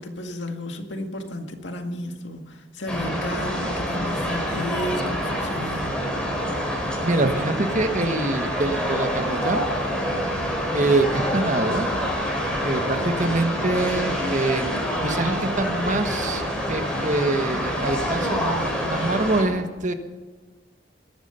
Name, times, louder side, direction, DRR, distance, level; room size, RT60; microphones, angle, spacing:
voice 1, 0.0-6.0, left 1 dB, 75° left, 4 dB, 2.1 m, -32 dB
sound 1, 2.9-19.4, equal, 5° left, 4.3 m, -26 dB
voice 2, 7.0-9.6 10.7-11.9 12.6-14.7 15.0-19.9, right 2 dB, 45° right, 7 dB, 1.4 m, -25 dB
20.5 x 12.0 x 5.7 m, 1.4 s
head